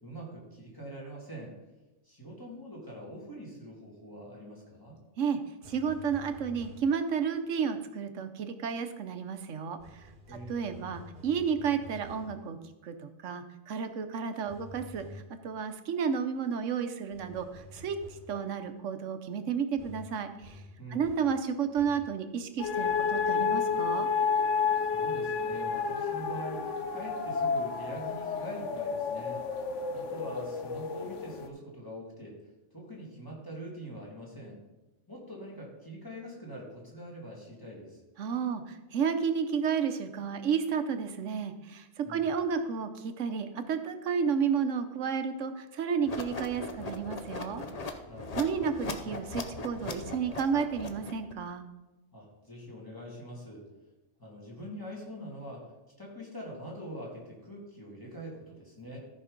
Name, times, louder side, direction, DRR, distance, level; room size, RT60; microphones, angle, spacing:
voice 1, 0.0-1.5 2.0-5.0 10.3-10.6 20.8-21.0 24.8-29.4 29.9-32.4 32.7-34.6 35.1-38.0 42.0-42.3 48.1-48.6 52.1-53.6 54.2-55.7 56.0-59.0, equal, 15° left, -4 dB, 2.6 m, -44 dB
sound 1, 5.6-7.0 9.8-12.4 14.5-15.4 17.1-18.4 19.8-21.4 21.7-22.2, left 1 dB, 45° right, 1.4 m, -49 dB
voice 2, 5.7-9.8 10.3-12.6 12.8-18.0 18.3-20.6 20.9-24.1 38.2-47.6 48.4-51.6, right 6 dB, 80° right, 9 dB, 1.2 m, -32 dB
sound 2, 22.6-31.5, left 6 dB, 75° left, 1.2 m, -30 dB
sound 3, 46.1-51.3, left 3 dB, 35° left, 0.8 m, -39 dB
14.0 x 5.3 x 5.2 m, 1.0 s
omnidirectional pair, 1.3 m